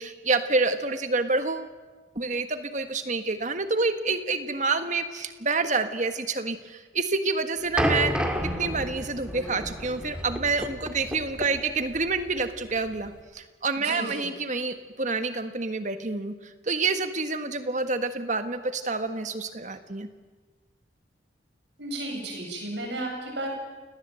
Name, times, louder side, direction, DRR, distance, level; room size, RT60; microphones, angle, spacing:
voice 1, 0.0-1.7 2.1-8.1 8.6-20.1, right 3 dB, 40° right, 9 dB, 1.5 m, -28 dB
sound 1, 7.8-13.2, equal, 5° right, 2.0 m, -31 dB
voice 2, 13.8-14.1 21.8-23.5, right 1 dB, 65° right, 1 dB, 8.0 m, -33 dB
29.0 x 19.0 x 7.7 m, 1.3 s
head